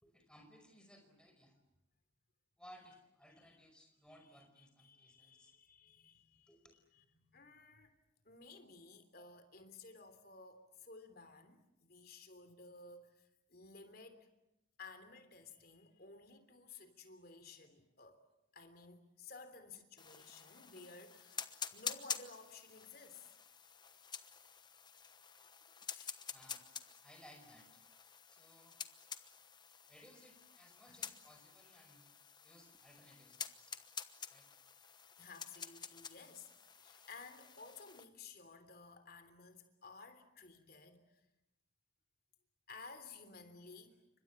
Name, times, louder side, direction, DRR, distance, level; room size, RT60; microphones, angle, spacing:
voice 1, 0.0-1.6 2.6-5.5 6.5-6.8 26.3-26.7 27.0-27.8 28.3-28.8 29.9-32.1 32.4-33.8 34.3-34.6, equal, 5° left, 5.0 m, -61 dB
voice 2, 4.3-6.5 6.9-7.9 8.2-14.3 14.8-18.2 18.5-23.4 25.9-26.2 30.9-31.1 35.2-41.2 42.7-44.0, left 4 dB, 50° left, 3.4 m, -56 dB
sound 1, 20.0-38.1, left 7 dB, 20° left, 1.1 m, -49 dB
30.0 x 25.5 x 7.3 m
head